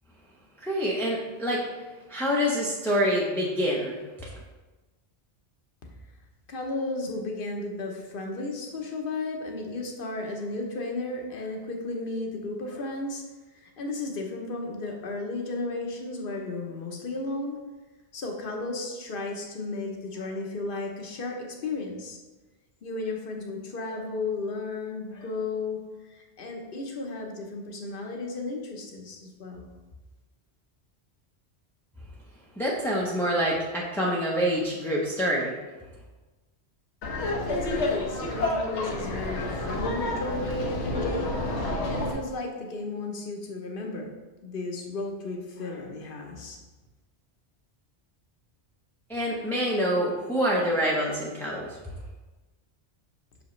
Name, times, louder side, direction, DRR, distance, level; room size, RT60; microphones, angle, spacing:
voice 1, 0.6-1.7 2.1-4.3 32.6-35.5 49.1-51.8, equal, 5° left, -4 dB, 0.6 m, -26 dB
voice 2, 6.5-13.2 13.5-17.6 18.1-22.2 22.8-29.7 37.4-41.3 41.9-44.1 44.4-46.6, left 2 dB, 55° left, 2 dB, 1.0 m, -34 dB
Laughter, 37.0-42.1, left 2 dB, 80° left, 1.2 m, -29 dB
6.1 x 5.0 x 3.1 m, 1.2 s
omnidirectional pair, 1.1 m